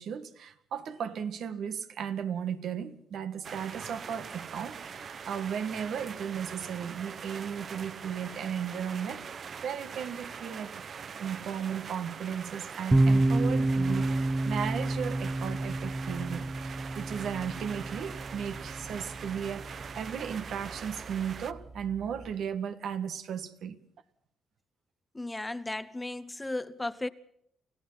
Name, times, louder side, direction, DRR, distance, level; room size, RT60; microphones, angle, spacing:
voice 1, 0.0-10.8 11.2-23.8, right 8 dB, 70° right, 1.7 m, -36 dB
sound 1, 3.4-21.5, right 6 dB, 50° right, 0.9 m, -43 dB
sound 2, 12.9-22.3, right 2 dB, 15° right, 1.0 m, -30 dB
voice 2, 25.1-27.1, left 2 dB, 15° left, 1.0 m, -35 dB
29.0 x 15.5 x 5.8 m
cardioid pair, 90°, 0 cm